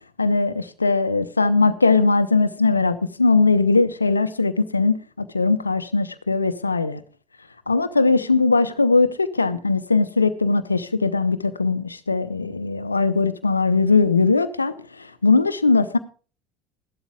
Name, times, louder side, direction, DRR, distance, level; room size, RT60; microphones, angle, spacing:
voice 1, 0.2-7.0 7.7-16.0, left 3 dB, 85° left, 0.6 m, -20 dB
15.0 x 12.0 x 3.5 m
figure-of-eight pair, 65°, 0 cm